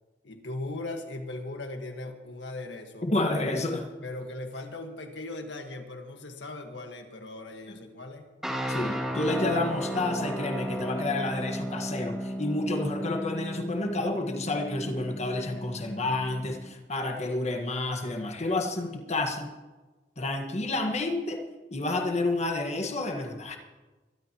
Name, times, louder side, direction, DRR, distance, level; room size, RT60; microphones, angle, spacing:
voice 1, 0.2-3.1 3.4-3.5 4.0-8.3, left 2 dB, 90° left, 4 dB, 1.6 m, -39 dB
voice 2, 3.0-3.9 8.7-19.5 20.2-21.4 21.7-23.6, left 2 dB, 40° left, 3 dB, 1.6 m, -30 dB
sound 1, 8.4-16.7, equal, 5° right, 2.4 m, -35 dB
23.0 x 13.0 x 3.0 m, 1.2 s
head